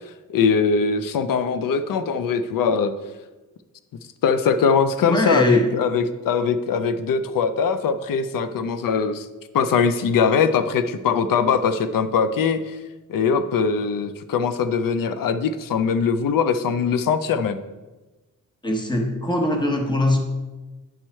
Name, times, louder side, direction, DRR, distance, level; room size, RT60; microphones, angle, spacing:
voice 1, 0.3-2.9 4.2-9.3 9.5-12.8 13.1-17.6, left 6 dB, 85° left, 11 dB, 0.5 m, -21 dB
voice 2, 5.1-5.6 18.6-20.2, left 1 dB, 15° left, 2 dB, 1.0 m, -21 dB
9.0 x 4.6 x 4.3 m, 1.2 s
wide cardioid pair, 165°, 33 cm